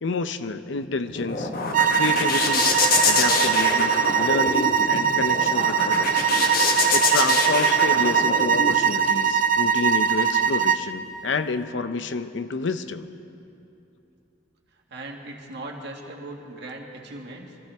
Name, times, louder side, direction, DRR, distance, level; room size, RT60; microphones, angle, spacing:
voice 1, 0.0-1.5 2.0-2.8 3.0-6.3 6.9-13.1, left 4 dB, 75° left, 11 dB, 0.6 m, -29 dB
sound 1, 0.8-8.7, left 4 dB, 55° left, 1.2 m, -25 dB
sound 2, 1.7-10.9, right 8 dB, 50° right, 0.6 m, -21 dB
voice 2, 14.7-17.6, right 2 dB, 65° right, 0 dB, 1.9 m, -39 dB
24.0 x 14.5 x 3.5 m, 2.8 s
head